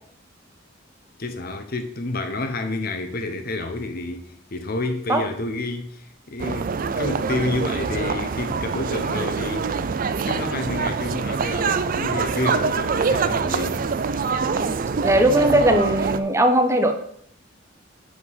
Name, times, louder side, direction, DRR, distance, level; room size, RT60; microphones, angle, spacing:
voice 1, 1.2-9.8 10.3-13.8, left 2 dB, 50° left, 0.8 m, -29 dB
sound 1, 6.4-16.2, right 5 dB, 45° right, 0.4 m, -25 dB
voice 2, 14.5-16.9, right 1 dB, 15° right, 0.9 m, -19 dB
8.1 x 4.8 x 5.4 m
head